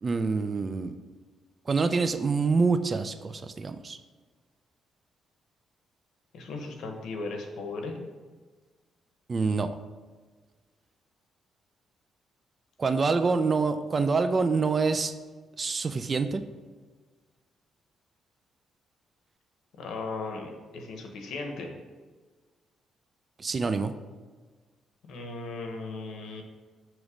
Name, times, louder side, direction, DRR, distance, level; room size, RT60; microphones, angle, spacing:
voice 1, 0.0-0.9 1.7-4.0 9.3-9.7 12.8-15.1 15.6-16.4 23.4-23.9, right 4 dB, 35° right, 9 dB, 0.3 m, -26 dB
voice 2, 6.3-8.0 19.8-21.7 25.1-26.4, left 3 dB, 80° left, 3 dB, 0.9 m, -37 dB
6.3 x 3.1 x 4.8 m, 1.4 s
cardioid pair, 95°, 0 cm